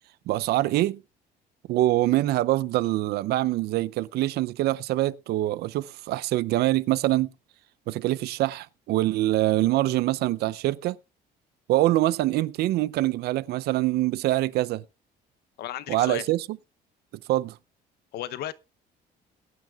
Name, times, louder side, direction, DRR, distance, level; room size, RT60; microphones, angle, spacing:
voice 1, 0.3-1.0 1.7-7.3 7.9-11.0 11.7-14.8 15.9-16.6 17.3-17.6, right 16 dB, 70° right, 0.5 m, -24 dB
voice 2, 15.6-16.2 18.1-18.5, left 13 dB, 70° left, 0.7 m, -34 dB
21.0 x 9.2 x 2.3 m
cardioid pair, 110°, 17 cm